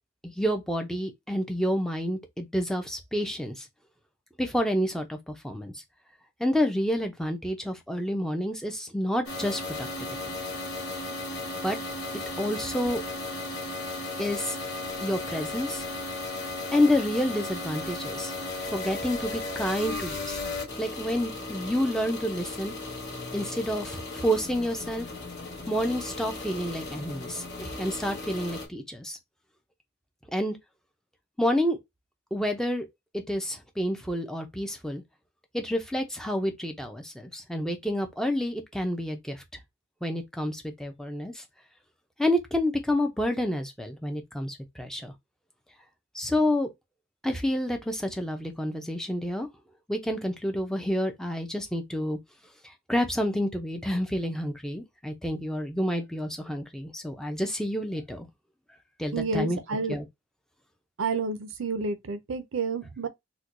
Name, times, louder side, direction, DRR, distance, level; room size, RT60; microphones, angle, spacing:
voice 1, 0.2-3.7 4.4-5.8 6.4-10.4 11.6-11.8 12.4-13.0 14.2-14.6 15.0-15.8 16.7-18.3 18.6-22.7 23.3-25.1 25.7-29.2 30.3-30.6 31.4-31.8 32.3-32.9 33.1-35.0 35.5-39.4 40.0-41.4 42.2-45.1 46.1-46.7 47.2-49.5 49.9-52.2 52.6-58.3 59.0-59.6 59.9-60.1, equal, 5° left, 0.5 m, -29 dB
sound 1, 9.3-28.7, left 2 dB, 50° left, 1.3 m, -36 dB
voice 2, 59.1-60.0 61.0-63.1, right 4 dB, 65° right, 0.5 m, -30 dB
4.3 x 2.2 x 2.5 m
head